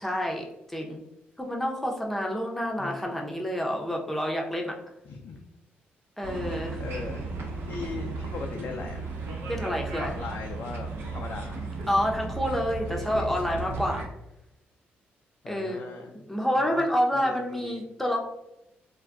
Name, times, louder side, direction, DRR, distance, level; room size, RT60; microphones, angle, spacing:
voice 1, 0.0-1.0 1.4-4.7 6.2-6.8 9.5-10.1 11.9-14.1 15.5-15.8 16.1-18.2, equal, 5° left, 0 dB, 0.6 m, -28 dB
voice 2, 2.8-3.3 5.1-5.4 6.5-7.2 7.6-9.1 9.6-9.7 10.0-11.7 13.1-13.7 15.4-16.2 16.6-17.8, left 4 dB, 60° left, 2 dB, 0.4 m, -39 dB
sound 1, 6.2-14.1, right 3 dB, 85° right, 0.7 m, -35 dB
2.3 x 2.2 x 3.5 m, 0.89 s
cardioid pair, 75°, 4 cm